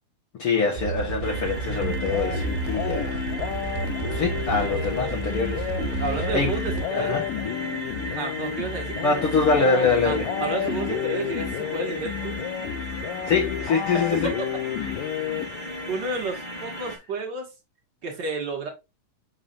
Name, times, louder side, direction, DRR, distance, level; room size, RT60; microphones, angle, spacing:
voice 1, 0.4-3.2 4.0-6.0 6.3-6.5 6.9-7.2 9.0-10.3 13.3-14.3, left 4 dB, 55° left, 1.7 m, -24 dB
sound 1, 0.8-6.9, right 7 dB, 90° right, 2.3 m, -32 dB
sound 2, 1.2-17.0, right 1 dB, 25° left, 1.1 m, -36 dB
sound 3, 1.7-16.0, left 10 dB, 80° left, 2.4 m, -31 dB
voice 2, 5.7-7.2 8.1-9.0 10.0-12.3 13.9-14.5 15.8-17.4 18.0-18.7, right 3 dB, 40° right, 1.7 m, -31 dB
7.0 x 5.7 x 2.5 m
omnidirectional pair, 3.9 m